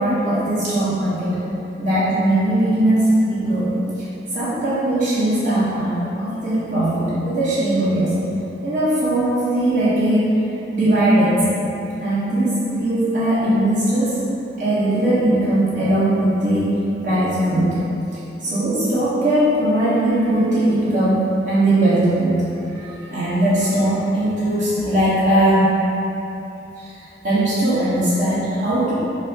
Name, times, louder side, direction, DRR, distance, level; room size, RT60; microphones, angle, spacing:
voice 1, 0.0-1.4 1.8-3.8 4.3-8.2 8.6-10.2 10.7-11.5 12.0-14.1 14.6-16.7 17.0-17.7 18.4-22.7 23.0-25.8 27.2-28.9, right 1 dB, 45° right, -12 dB, 1.4 m, -19 dB
4.5 x 2.1 x 4.5 m, 2.9 s
head